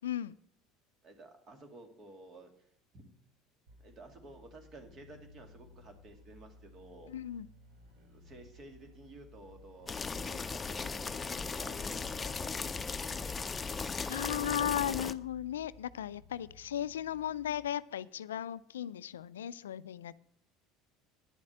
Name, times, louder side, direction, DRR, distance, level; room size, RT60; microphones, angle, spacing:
voice 1, 0.0-0.4 7.1-7.5 14.1-20.2, left 10 dB, 90° left, 17 dB, 0.3 m, -36 dB
voice 2, 1.0-2.7 2.9-3.1 3.8-7.2 8.0-13.4, right 2 dB, 45° right, 5 dB, 2.5 m, -53 dB
sound 1, 3.7-17.7, left 2 dB, 75° right, 1.7 m, -58 dB
sound 2, 9.9-15.1, left 4 dB, 25° left, 0.6 m, -37 dB
10.0 x 7.3 x 7.6 m, 0.66 s
hypercardioid pair, 75°, 0 cm